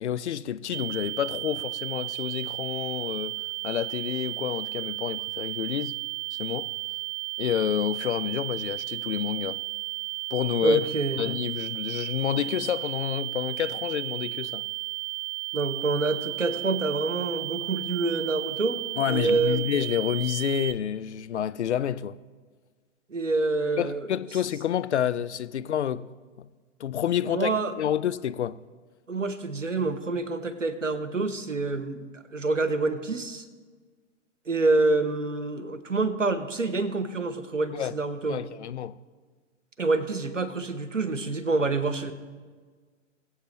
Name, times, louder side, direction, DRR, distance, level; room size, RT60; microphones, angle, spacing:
voice 1, 0.0-3.4 3.6-5.9 6.3-6.7 7.4-9.6 10.3-10.9 11.2-14.6 19.0-22.2 23.8-26.1 26.4-26.5 26.8-27.5 27.8-28.6 37.7-37.9 38.3-38.9, left 9 dB, 65° left, 0.5 m, -29 dB
sound 1, 0.7-20.7, right 24 dB, 35° right, 0.5 m, -34 dB
voice 2, 10.6-11.2 15.5-18.8 19.1-19.7 23.1-24.1 27.2-27.7 29.1-33.5 34.5-38.4 39.8-42.1, right 3 dB, 85° right, 1.0 m, -27 dB
21.5 x 8.1 x 3.1 m
figure-of-eight pair, 110°, 37 cm